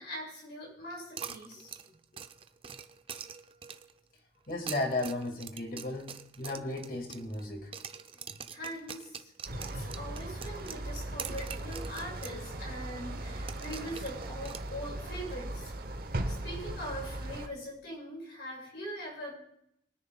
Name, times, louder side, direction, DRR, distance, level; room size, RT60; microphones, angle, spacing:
voice 1, 0.0-1.8 8.1-9.3 9.6-15.7 16.3-19.3, equal, 70° left, -2 dB, 5.8 m, -42 dB
sound 1, 1.2-4.0 4.5-7.5 7.7-12.4 12.7-12.8 13.5-15.1, right 7 dB, 30° right, 0.5 m, -44 dB
voice 2, 4.5-7.7 8.3-8.4 9.5-9.9, left 2 dB, 55° left, 3 dB, 2.0 m, -35 dB
sound 2, 9.4-17.5, right 1 dB, 55° right, 0.9 m, -38 dB
22.5 x 10.0 x 2.3 m, 0.74 s
head